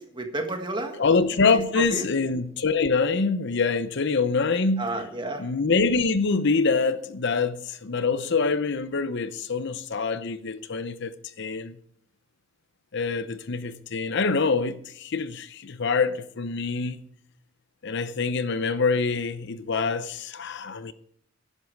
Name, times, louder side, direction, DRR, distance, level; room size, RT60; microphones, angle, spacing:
voice 1, 0.0-1.0 1.8-2.1 4.8-5.5, right 2 dB, 25° right, 1.7 m, -31 dB
voice 2, 1.0-4.8 5.4-11.8 12.9-17.0 17.8-20.9, left 4 dB, 55° left, 0.7 m, -25 dB
11.5 x 10.5 x 4.7 m
head